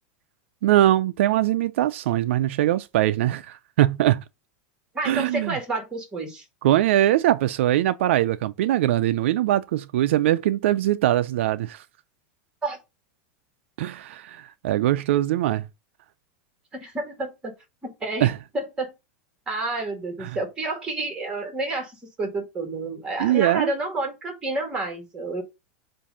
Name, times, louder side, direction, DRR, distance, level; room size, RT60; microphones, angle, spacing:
voice 1, 0.6-4.2 5.0-5.6 6.6-11.8 13.8-15.7 18.2-18.4 20.2-20.4 23.2-23.7, right 13 dB, 75° right, 0.4 m, -22 dB
voice 2, 4.9-6.4 12.6-12.8 16.7-17.5 17.8-18.3 18.5-18.9 19.5-21.9 22.2-25.4, right 2 dB, 10° right, 2.0 m, -29 dB
7.3 x 2.6 x 5.5 m
supercardioid pair, 165°, 7 cm